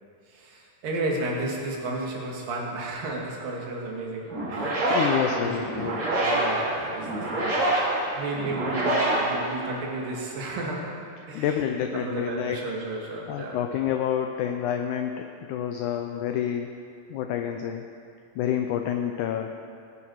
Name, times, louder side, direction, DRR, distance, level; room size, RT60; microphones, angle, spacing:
voice 1, 0.3-4.8 5.3-7.6 8.1-10.9 11.3-11.5 11.9-13.6, right 2 dB, 70° right, -2 dB, 3.4 m, -33 dB
sound 1, 4.3-10.1, right 1 dB, 45° right, 4.6 m, -26 dB
voice 2, 4.9-5.9 11.3-12.6 13.3-16.8 17.1-17.9 18.3-19.5, left 9 dB, 90° left, 5 dB, 1.7 m, -28 dB
19.0 x 9.9 x 4.6 m, 2.4 s
omnidirectional pair, 4.3 m